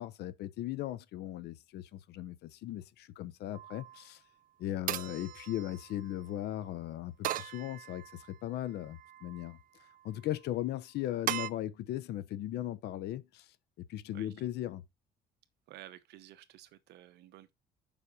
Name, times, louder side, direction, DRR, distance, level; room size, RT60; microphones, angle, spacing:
voice 1, 0.0-4.2 4.6-9.6 10.0-13.5 13.8-14.8, left 13 dB, 75° left, 0.8 m, -38 dB
sound 1, 3.5-4.0 4.9-6.2 7.2-8.3 8.9-9.5 11.3-11.5, right 12 dB, 55° right, 0.5 m, -38 dB
voice 2, 14.1-14.5 15.7-17.5, right 13 dB, 80° right, 1.0 m, -53 dB
7.2 x 5.3 x 4.8 m
cardioid pair, 110°, 17 cm